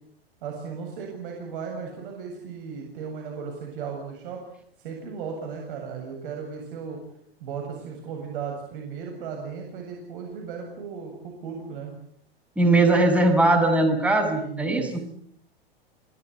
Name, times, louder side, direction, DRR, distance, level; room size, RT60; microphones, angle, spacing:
voice 1, 0.4-4.4 4.8-7.0 7.4-11.9 14.3-15.0, right 6 dB, 60° right, 2 dB, 7.6 m, -36 dB
voice 2, 12.6-15.0, right 2 dB, 5° right, 3 dB, 7.1 m, -20 dB
28.5 x 18.0 x 9.5 m, 0.67 s
hypercardioid pair, 110°, 31 cm